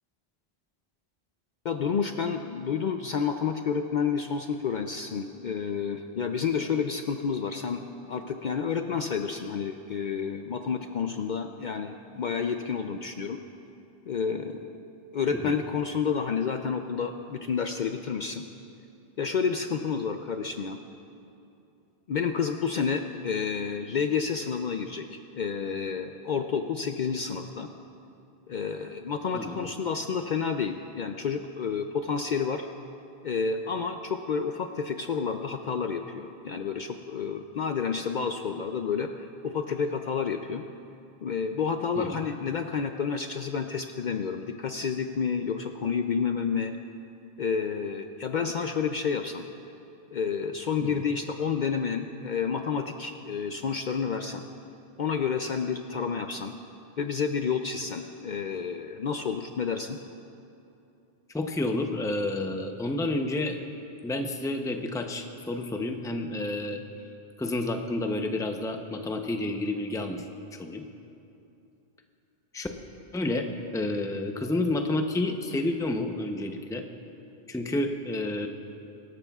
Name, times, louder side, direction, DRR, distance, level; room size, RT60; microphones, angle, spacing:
voice 1, 1.6-7.8 8.1-13.4 14.1-14.7 15.1-18.4 19.2-20.8 22.1-27.7 28.5-32.7 33.2-40.6 41.2-46.7 47.4-49.5 50.1-54.4 55.0-56.5 57.0-60.0, left 6 dB, 55° left, 6 dB, 0.6 m, -30 dB
voice 2, 29.3-29.7 42.0-42.2 50.8-50.9 61.3-63.6 64.0-66.8 67.4-70.3 70.5-70.8 72.5-72.7 73.1-76.8 77.5-78.5, left 2 dB, 5° left, 4 dB, 0.5 m, -30 dB
24.5 x 13.0 x 2.4 m, 2.8 s
omnidirectional pair, 1.1 m